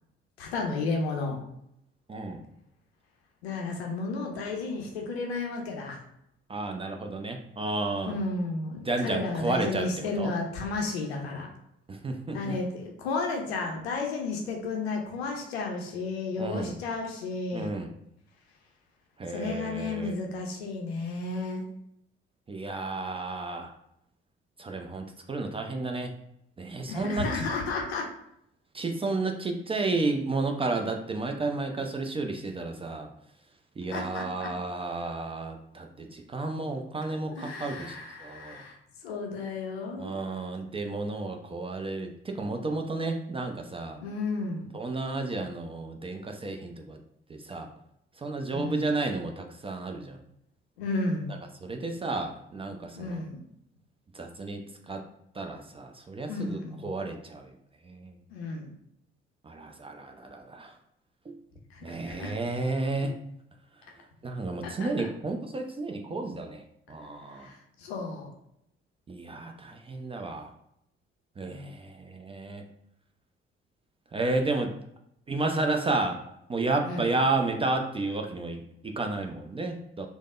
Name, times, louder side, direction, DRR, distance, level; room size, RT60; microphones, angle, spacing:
voice 1, 0.4-1.4 3.4-6.0 8.0-11.5 12.3-17.7 19.3-21.6 26.9-28.1 33.9-34.5 37.3-38.8 39.0-40.2 44.0-44.7 48.5-48.9 50.8-51.3 52.9-53.4 56.3-57.2 58.3-58.7 61.7-62.3 64.6-65.1 67.3-68.3 71.5-71.7 76.8-77.1, left 3 dB, 80° left, 1 dB, 0.5 m, -33 dB
voice 2, 2.1-2.4 6.5-8.2 8.8-10.3 11.9-12.6 16.4-16.7 17.5-17.9 19.2-20.1 22.5-23.7 24.6-26.1 26.6-27.3 28.7-33.1 33.8-38.6 40.0-44.0 44.7-47.0 47.3-47.7 48.2-50.2 51.6-53.2 54.1-55.0 55.3-57.5 57.8-58.1 59.4-60.7 61.3-61.4 61.8-63.1 64.2-66.6 66.9-67.5 69.1-70.5 71.4-72.6 74.1-74.7 75.3-76.2 76.5-80.1, right 3 dB, 20° right, 4 dB, 0.4 m, -32 dB
3.3 x 2.0 x 2.4 m, 0.76 s
figure-of-eight pair, 45°, 31 cm